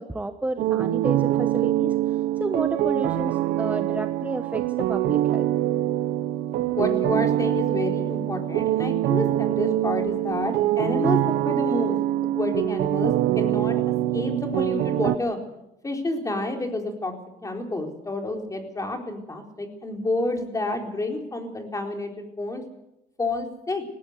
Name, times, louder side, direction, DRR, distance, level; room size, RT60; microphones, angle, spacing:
voice 1, 0.0-5.5, right 2 dB, 10° right, 8 dB, 1.1 m, -31 dB
sound 1, 0.6-15.2, right 14 dB, 80° right, 1.1 m, -24 dB
voice 2, 6.7-12.0 12.3-13.8 14.1-15.4 15.8-17.1 17.4-22.6 23.2-23.8, left 2 dB, 20° left, 3 dB, 4.1 m, -29 dB
19.5 x 16.5 x 8.1 m, 0.87 s
cardioid pair, 110°, 17 cm